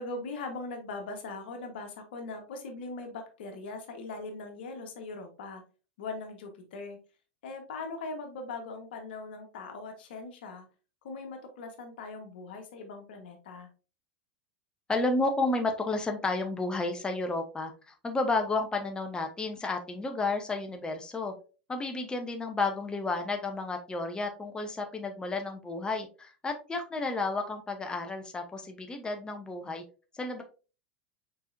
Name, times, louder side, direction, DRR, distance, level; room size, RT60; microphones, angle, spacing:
voice 1, 0.0-5.6 6.0-7.0 7.4-10.7 11.0-13.7, left 3 dB, 70° left, 5 dB, 1.2 m, -40 dB
voice 2, 14.9-21.3 21.7-29.8 30.1-30.4, left 3 dB, 15° left, 4 dB, 0.8 m, -32 dB
4.5 x 4.4 x 2.6 m, 0.34 s
hypercardioid pair, 90°, 6 cm